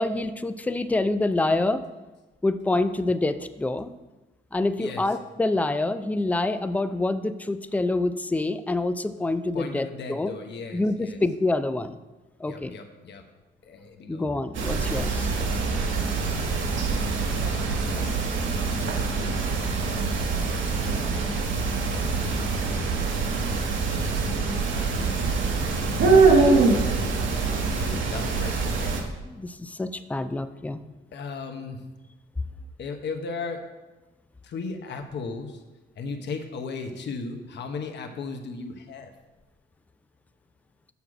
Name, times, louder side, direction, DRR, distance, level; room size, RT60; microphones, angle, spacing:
voice 1, 0.0-1.8 2.4-3.9 4.5-10.3 10.7-12.0 12.4-12.7 14.1-15.3 26.5-26.6 29.2-30.8, left 2 dB, 5° left, 11 dB, 0.4 m, -26 dB
voice 2, 4.8-5.2 9.5-11.2 12.4-13.3 13.6-14.2 17.4-18.6 24.7-29.0 31.1-31.8 32.8-33.6 34.4-35.6 36.0-39.1, left 4 dB, 60° left, 5 dB, 1.1 m, -37 dB
sound 1, 14.5-29.0, right 4 dB, 75° right, 1.3 m, -24 dB
7.0 x 6.3 x 4.8 m, 1.1 s
cardioid pair, 90°, 20 cm